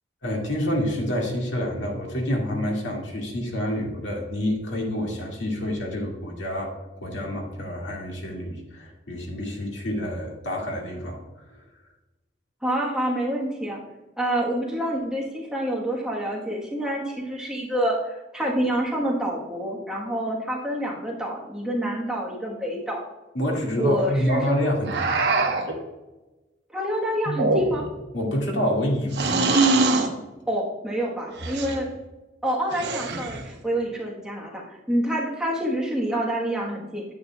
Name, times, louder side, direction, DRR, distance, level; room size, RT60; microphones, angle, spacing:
voice 1, 0.2-11.2 11.5-11.7 23.3-25.1 25.3-25.5 28.1-29.4, equal, 85° left, -1 dB, 2.1 m, -27 dB
voice 2, 12.6-13.8 14.2-23.0 23.8-24.6 26.7-27.8 30.5-31.9 32.4-37.0, right 1 dB, 5° right, -3 dB, 1.2 m, -27 dB
sound 1, 24.9-25.8 27.3-28.0 29.1-30.1 31.4-31.8 32.7-33.4, right 3 dB, 65° right, 1.0 m, -23 dB
9.5 x 8.4 x 2.3 m, 1.1 s
head